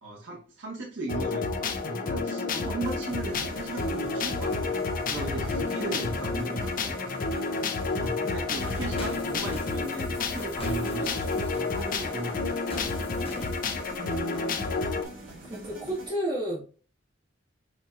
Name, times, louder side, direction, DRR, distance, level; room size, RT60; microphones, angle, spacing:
voice 1, 0.0-4.8 5.1-7.1 7.9-12.6, right 2 dB, 85° right, -2 dB, 1.3 m, -37 dB
sound 1, 1.1-15.0, left 3 dB, 45° left, 0.5 m, -30 dB
sound 2, 2.8-16.1, right 1 dB, 70° right, 1.7 m, -44 dB
sound 3, 8.6-14.0, left 1 dB, 30° left, 1.0 m, -43 dB
voice 2, 13.9-14.9 15.4-16.6, equal, 30° right, -6 dB, 1.1 m, -33 dB
5.0 x 2.8 x 2.4 m, 0.38 s
head